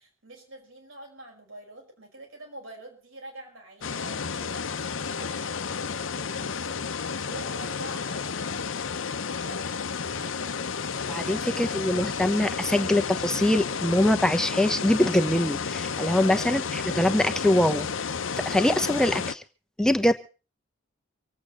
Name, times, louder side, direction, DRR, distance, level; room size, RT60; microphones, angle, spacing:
voice 1, 0.0-10.7 11.2-11.5 16.1-16.5, right 1 dB, 80° right, 2 dB, 5.3 m, -46 dB
sound 1, 3.8-19.3, left 5 dB, 70° left, 0.8 m, -31 dB
voice 2, 11.1-17.9 18.4-19.4 19.8-20.1, left 1 dB, 5° left, 8 dB, 1.0 m, -23 dB
25.5 x 8.6 x 5.0 m, 0.35 s
head